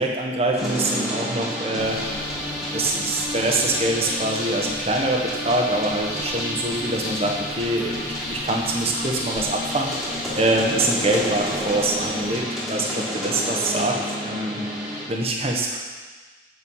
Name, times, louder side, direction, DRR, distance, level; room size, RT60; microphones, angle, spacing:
voice 1, 0.0-2.0 2.7-9.9 10.3-14.6 15.1-15.8, right 2 dB, 35° right, 0 dB, 1.1 m, -24 dB
sound 1, 0.6-15.1, equal, ahead, 2.0 m, -30 dB
sound 2, 1.8-12.4, left 1 dB, 70° left, 1.9 m, -36 dB
8.5 x 6.4 x 5.5 m, 1.4 s
head